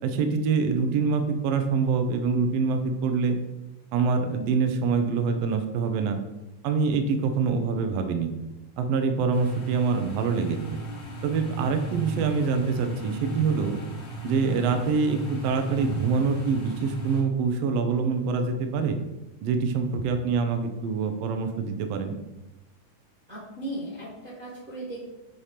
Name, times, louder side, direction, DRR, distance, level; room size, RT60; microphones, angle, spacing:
voice 1, 0.0-3.4 3.9-6.2 6.6-8.3 8.8-10.8 11.2-13.7 14.2-19.0 19.4-22.1, right 5 dB, 85° right, 6 dB, 1.4 m, -25 dB
sound 1, 9.3-17.2, right 1 dB, 60° left, 1.1 m, -36 dB
voice 2, 23.3-25.1, right 1 dB, 25° right, -6 dB, 1.1 m, -37 dB
8.0 x 2.9 x 5.1 m, 0.98 s
omnidirectional pair, 3.7 m